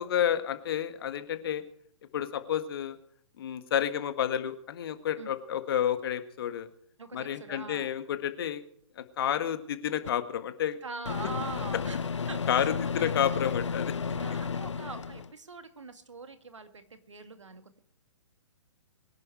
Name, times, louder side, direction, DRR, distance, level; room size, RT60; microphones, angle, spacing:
voice 1, 0.0-1.6 2.1-3.0 3.4-6.7 7.1-8.6 9.0-10.8 12.5-13.9, left 9 dB, 50° left, 10 dB, 1.8 m, -30 dB
voice 2, 7.0-7.9 10.8-13.3 14.1-17.8, right 4 dB, 75° right, 9 dB, 2.1 m, -43 dB
Microwave oven, 10.1-10.2 11.1-15.3, left 5 dB, 70° left, 0.7 m, -32 dB
23.0 x 11.0 x 4.7 m, 0.63 s
figure-of-eight pair, 120°, 16 cm